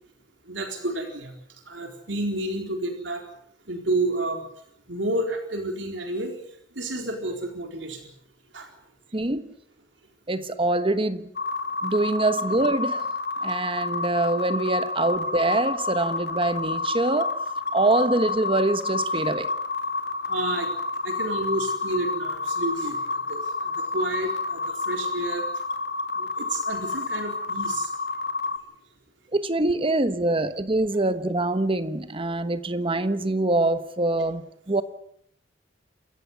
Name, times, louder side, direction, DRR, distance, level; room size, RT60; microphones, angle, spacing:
voice 1, 0.5-1.4 1.7-3.2 3.7-4.4 4.9-6.3 6.8-8.1 8.5-8.7 20.3-20.7 21.0-25.5 26.2-27.9, right 2 dB, 85° right, 4.1 m, -30 dB
voice 2, 9.1-9.5 10.3-11.3 11.8-13.1 13.4-17.4 17.7-19.5 29.3-34.8, right 2 dB, 30° right, 1.2 m, -24 dB
sound 1, 11.4-28.6, left 3 dB, 65° left, 2.1 m, -29 dB
28.0 x 15.0 x 8.1 m
head